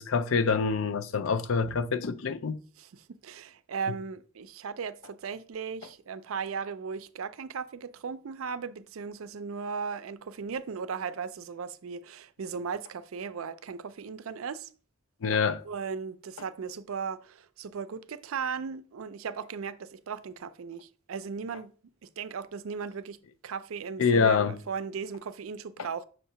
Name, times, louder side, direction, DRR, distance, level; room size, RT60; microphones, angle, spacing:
voice 1, 0.0-2.6 15.2-15.6 24.0-24.6, left 5 dB, 75° left, 0.5 m, -26 dB
voice 2, 2.8-14.7 15.6-21.7 22.0-23.2 23.4-26.0, right 6 dB, 80° right, 0.4 m, -37 dB
6.3 x 2.8 x 5.5 m
head